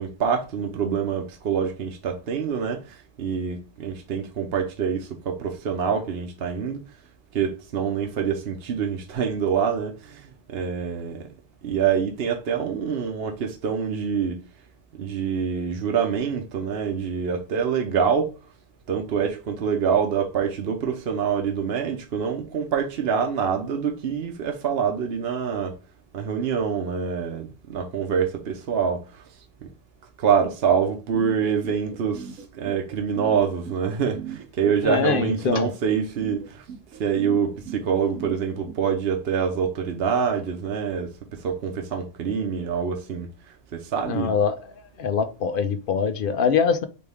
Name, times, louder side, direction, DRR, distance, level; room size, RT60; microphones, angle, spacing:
voice 1, 0.0-6.8 7.3-11.3 11.6-14.4 15.0-18.3 18.9-25.8 26.1-29.2 30.2-36.6 37.0-44.3, right 7 dB, 55° right, 0.9 m, -26 dB
sound 1, 31.6-38.8, right 8 dB, 85° right, 1.2 m, -38 dB
voice 2, 34.8-35.7 44.1-44.6 45.0-46.8, left 6 dB, 60° left, 0.6 m, -23 dB
4.4 x 3.4 x 3.4 m
omnidirectional pair, 1.3 m